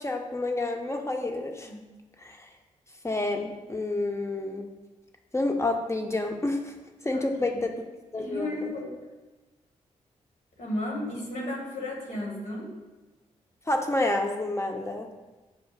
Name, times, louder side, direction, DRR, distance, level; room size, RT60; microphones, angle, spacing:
voice 1, 0.0-1.7 2.2-2.4 3.0-4.7 5.3-6.7 7.0-7.7 8.1-8.7 13.7-15.1, left 2 dB, 20° left, 3 dB, 0.7 m, -29 dB
voice 2, 8.1-9.0 10.6-12.7, left 1 dB, 65° left, -2 dB, 1.5 m, -34 dB
7.1 x 2.5 x 2.4 m, 1.2 s
supercardioid pair, 40°, 14 cm